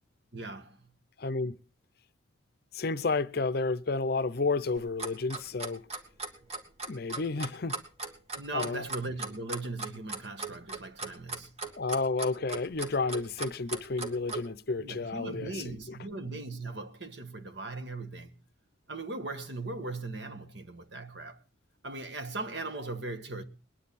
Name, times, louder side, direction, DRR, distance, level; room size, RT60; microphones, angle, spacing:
voice 1, 0.3-0.9 7.4-7.5 8.3-11.5 14.8-18.3 18.9-21.4 21.8-23.4, right 2 dB, 60° right, 1.4 m, -39 dB
voice 2, 1.2-1.6 2.7-5.9 6.9-7.8 8.5-8.8 11.8-15.5 15.9-16.0, left 3 dB, 50° left, 0.6 m, -31 dB
Clock, 4.8-14.5, right 3 dB, 30° right, 2.1 m, -37 dB
21.5 x 10.5 x 4.1 m
head